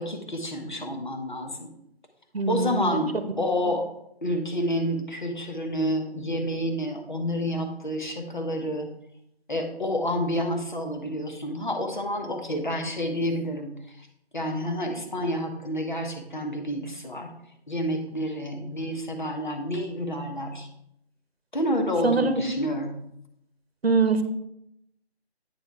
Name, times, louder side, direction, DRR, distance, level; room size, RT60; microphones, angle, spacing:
voice 1, 0.0-1.7 2.5-3.9 4.2-8.9 9.5-14.1 14.3-17.3 17.7-20.7 21.5-22.9, equal, 50° left, 3 dB, 1.1 m, -29 dB
voice 2, 2.3-3.0 22.0-22.4 23.8-24.2, right 4 dB, 65° right, 9 dB, 0.9 m, -23 dB
8.9 x 3.4 x 4.6 m, 0.78 s
figure-of-eight pair, 180°, 32 cm